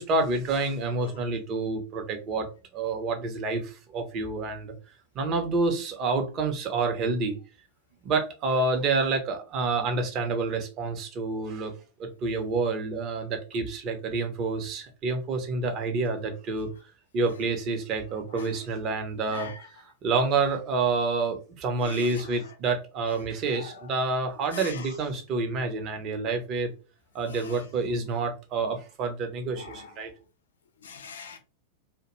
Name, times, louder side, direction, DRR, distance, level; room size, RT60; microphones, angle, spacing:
voice 1, 0.0-2.5 2.7-4.7 5.1-7.4 8.0-11.7 12.0-16.7 17.1-19.5 20.0-26.7 27.1-30.1, right 3 dB, 35° right, 0.7 m, -28 dB
voice 2, 19.3-19.7 21.8-22.2 23.5-23.7 24.5-24.9 27.2-27.7 29.5-29.9 30.8-31.4, left 5 dB, 65° left, 0.5 m, -41 dB
2.3 x 2.1 x 3.0 m
figure-of-eight pair, 90°, 0 cm